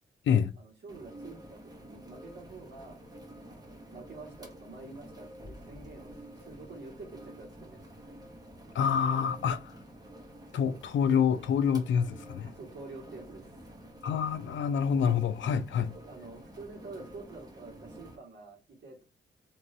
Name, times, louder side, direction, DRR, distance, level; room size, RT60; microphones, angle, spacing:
voice 1, 0.6-3.0 3.4-7.8 12.4-13.7 15.9-19.0, right 3 dB, 60° right, 1.7 m, -48 dB
sound 1, 0.9-18.2, right 1 dB, 20° right, 0.8 m, -49 dB
voice 2, 8.7-9.8 10.5-12.5 14.0-15.9, left 7 dB, 70° left, 0.5 m, -27 dB
3.1 x 2.9 x 2.7 m
cardioid pair, 105°, 20 cm